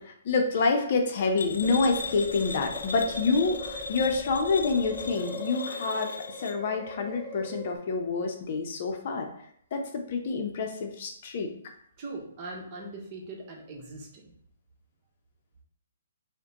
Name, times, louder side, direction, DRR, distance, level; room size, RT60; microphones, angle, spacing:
voice 1, 0.0-9.3 9.7-11.5, left 4 dB, 50° left, 4 dB, 0.7 m, -27 dB
sound 1, 1.4-6.6, left 4 dB, 85° left, 0.3 m, -38 dB
sound 2, 1.6-7.8, left 1 dB, 20° right, 0.6 m, -40 dB
voice 2, 12.0-14.3, right 2 dB, 35° right, -1 dB, 1.0 m, -41 dB
4.8 x 2.2 x 2.9 m, 0.67 s
hypercardioid pair, 140°, 0 cm